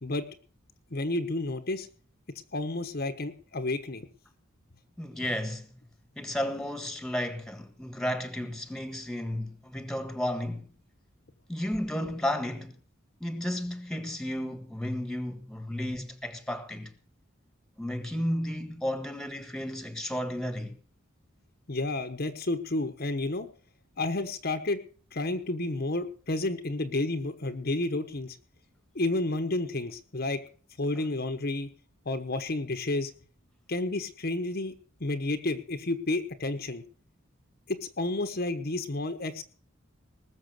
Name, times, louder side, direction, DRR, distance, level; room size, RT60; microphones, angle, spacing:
voice 1, 0.9-1.9 2.5-4.1 21.7-23.5 24.0-24.8 25.1-28.4 28.9-30.4 30.8-31.7 32.0-33.1 33.7-34.7 35.0-36.8 37.7-39.4, left 2 dB, 50° left, 1.1 m, -31 dB
voice 2, 5.0-5.7 6.2-10.7 11.5-12.7 13.2-16.9 17.8-20.7, left 1 dB, 5° left, 1.6 m, -33 dB
19.5 x 7.1 x 6.7 m
head